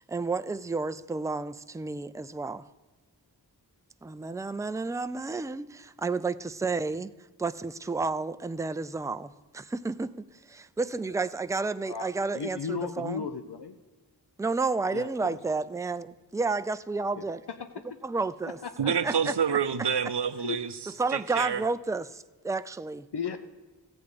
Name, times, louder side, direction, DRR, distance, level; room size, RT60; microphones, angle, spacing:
voice 1, 0.0-2.7 4.0-7.1 7.4-10.1 10.4-13.2 14.4-17.4 18.0-19.3 21.0-23.1, right 3 dB, 10° right, 0.4 m, -31 dB
voice 2, 12.3-13.8 14.9-15.4 17.2-17.3 17.6-18.0 18.6-18.7 20.4-20.7 23.1-23.4, left 6 dB, 70° left, 0.7 m, -35 dB
voice 3, 18.8-20.7 21.1-21.6, right 7 dB, 75° right, 0.7 m, -27 dB
15.0 x 8.2 x 5.0 m
wide cardioid pair, 55°, 41 cm